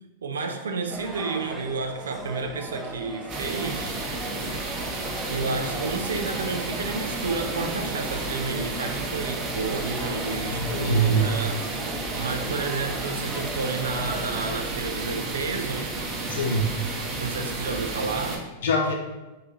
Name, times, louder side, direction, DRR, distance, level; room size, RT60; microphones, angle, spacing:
voice 1, 0.2-4.0 5.3-15.9 17.2-18.4, right 4 dB, 75° right, 5 dB, 0.4 m, -31 dB
sound 1, 0.9-14.6, right 1 dB, 5° right, 0.6 m, -38 dB
sound 2, 3.3-18.4, right 2 dB, 35° right, 0.8 m, -32 dB
voice 2, 10.5-11.3 16.3-16.7 18.6-18.9, right 2 dB, 65° left, 1 dB, 0.7 m, -23 dB
3.8 x 2.7 x 3.7 m, 1.1 s
figure-of-eight pair, 95°, 0 cm